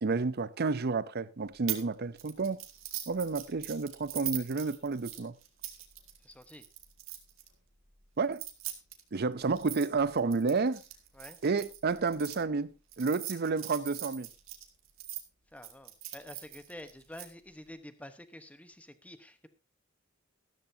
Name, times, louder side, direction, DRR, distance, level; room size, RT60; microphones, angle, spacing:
voice 1, 0.0-2.6 3.1-5.4 8.2-8.4 9.1-10.8 11.4-14.3, right 4 dB, 50° right, 0.6 m, -30 dB
sound 1, 1.7-1.9 2.2-7.5 8.2-12.4 12.9-15.2 15.6-17.3, right 13 dB, 85° right, 2.0 m, -41 dB
voice 2, 6.2-6.7 11.1-11.4 15.5-19.5, left 1 dB, 5° left, 1.1 m, -49 dB
14.0 x 13.0 x 2.8 m
head